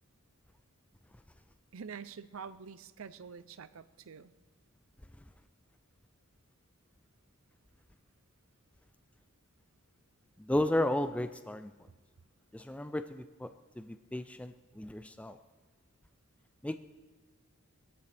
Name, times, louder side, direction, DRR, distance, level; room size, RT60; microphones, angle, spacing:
voice 1, 1.7-4.3, right 6 dB, 65° right, 14 dB, 0.6 m, -46 dB
voice 2, 10.4-11.7 12.5-15.4 16.6-16.8, left 1 dB, 5° left, 10 dB, 0.3 m, -34 dB
21.5 x 14.5 x 3.4 m, 1.3 s
head